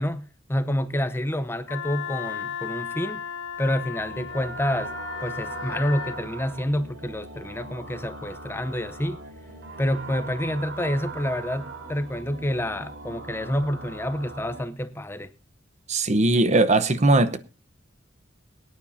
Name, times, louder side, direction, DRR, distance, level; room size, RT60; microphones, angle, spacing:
voice 1, 0.0-3.2 3.6-4.9 5.2-9.2 9.8-15.3, left 1 dB, 15° left, 0.7 m, -28 dB
Wind instrument woodwind instrument, 1.7-6.2, left 7 dB, 90° left, 1.9 m, -35 dB
sound 1, 4.0-14.6, right 3 dB, 90° right, 2.6 m, -40 dB
voice 2, 15.9-17.4, right 2 dB, 40° right, 0.9 m, -19 dB
23.0 x 9.5 x 2.7 m
head